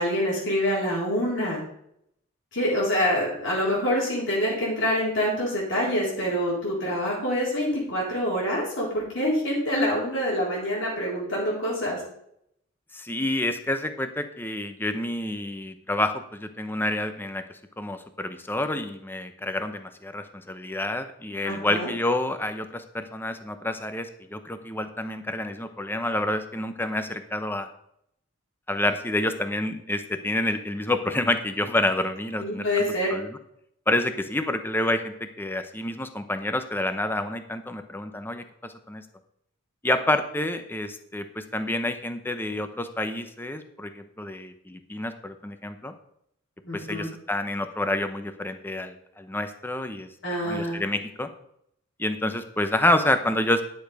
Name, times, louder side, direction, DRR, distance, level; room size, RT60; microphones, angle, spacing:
voice 1, 0.0-1.6 2.5-12.0 21.4-21.9 32.4-33.1 46.7-47.1 50.2-50.8, equal, 65° left, -6 dB, 4.2 m, -26 dB
voice 2, 12.9-17.4 17.8-27.7 28.7-32.7 33.1-33.4 33.9-39.0 39.8-45.9 46.7-50.1 50.4-51.3 52.0-53.6, left 1 dB, 10° left, 9 dB, 0.8 m, -28 dB
11.0 x 6.8 x 5.2 m, 0.73 s
head